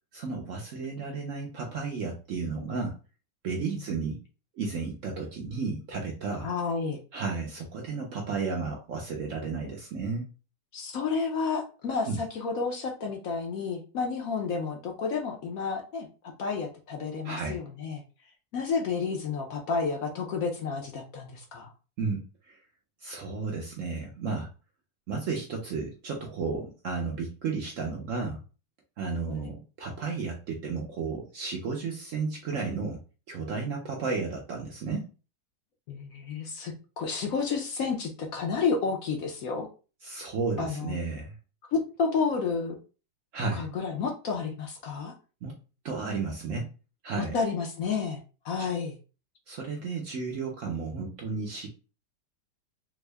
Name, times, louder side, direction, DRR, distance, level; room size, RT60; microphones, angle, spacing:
voice 1, 0.1-3.0 3.4-4.2 4.6-6.5 7.1-10.3 12.0-12.2 17.2-17.6 22.0-22.6 23.0-24.5 25.1-28.4 29.0-33.0 33.3-35.1 40.0-41.3 43.3-43.7 45.4-45.5 45.8-46.7 47.0-47.3 48.6-48.7 49.5-51.7, right 4 dB, 65° right, 1 dB, 0.8 m, -33 dB
voice 2, 6.4-7.0 10.7-16.1 16.4-18.0 18.5-21.7 29.3-29.5 35.9-39.7 40.6-40.9 41.7-42.8 43.5-45.1 47.2-49.0, left 5 dB, 65° left, 2 dB, 0.9 m, -31 dB
3.5 x 2.1 x 3.3 m, 0.34 s
omnidirectional pair, 1.8 m